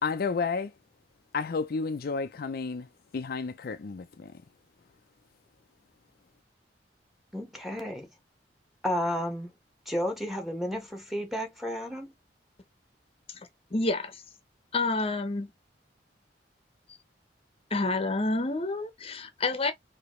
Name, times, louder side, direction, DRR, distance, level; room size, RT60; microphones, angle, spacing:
voice 1, 0.0-0.7 1.3-2.9 3.1-4.3, left 4 dB, 55° left, 0.5 m, -31 dB
voice 2, 7.3-8.1 8.8-9.5 9.9-12.1, equal, ahead, 1.3 m, -32 dB
voice 3, 13.3-14.2 14.7-15.5 17.7-19.7, left 2 dB, 35° left, 0.8 m, -29 dB
5.0 x 2.8 x 3.1 m
head